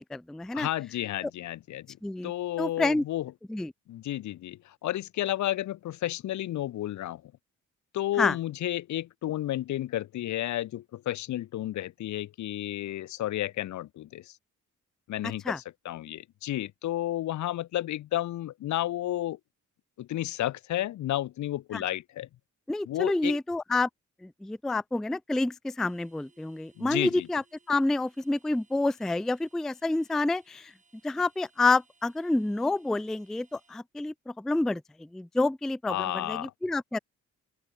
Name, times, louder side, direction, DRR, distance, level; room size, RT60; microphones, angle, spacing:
voice 1, 0.0-0.7 2.0-2.3 2.6-3.0 3.5-3.7 8.2-8.4 15.5-15.6 21.7-21.8 22.7-23.9 24.2-30.7 31.0-37.0, left 2 dB, ahead, 0.3 m, -28 dB
voice 2, 0.5-1.9 2.2-3.3 3.9-7.2 7.9-14.3 15.1-19.4 20.0-22.3 22.9-23.4 26.8-27.3 35.9-36.5, left 13 dB, 70° left, 1.0 m, -32 dB
sound 1, 25.8-33.8, right 4 dB, 25° right, 5.2 m, -66 dB
open air
cardioid pair, 90°, 30 cm